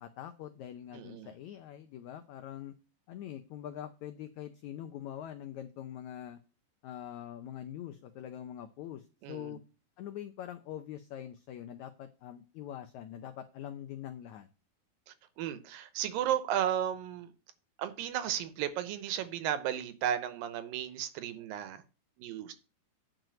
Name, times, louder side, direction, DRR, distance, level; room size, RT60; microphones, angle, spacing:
voice 1, 0.0-2.7 3.1-6.4 6.8-9.6 10.0-14.5, left 11 dB, 85° left, 8 dB, 1.6 m, -44 dB
voice 2, 0.9-1.3 9.2-9.6 15.1-17.3 17.8-21.8 22.2-22.5, right 10 dB, 75° right, 12 dB, 2.5 m, -34 dB
9.2 x 4.9 x 7.6 m, 0.32 s
omnidirectional pair, 4.3 m